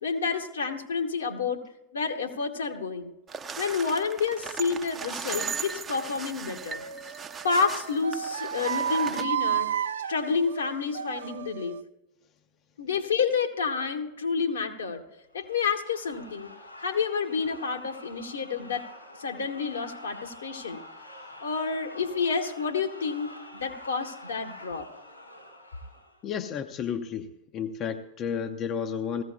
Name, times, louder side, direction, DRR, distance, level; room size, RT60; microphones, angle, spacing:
voice 1, 0.0-1.6 1.9-3.1 3.6-6.8 7.4-9.7 10.1-11.8 12.8-15.0 15.3-16.5 16.8-18.9 19.2-20.8 21.4-24.9, left 5 dB, 70° left, 3 dB, 1.4 m, -29 dB
sound 1, 3.3-9.3, right 6 dB, 20° right, 0.6 m, -37 dB
sound 2, 6.5-11.8, right 9 dB, 65° right, 0.5 m, -32 dB
sound 3, 15.3-26.3, left 1 dB, 85° left, 5.0 m, -47 dB
voice 2, 26.2-27.3 27.5-29.2, left 7 dB, 35° left, 7 dB, 0.6 m, -32 dB
18.5 x 15.5 x 2.2 m, 0.92 s
figure-of-eight pair, 90°, 0 cm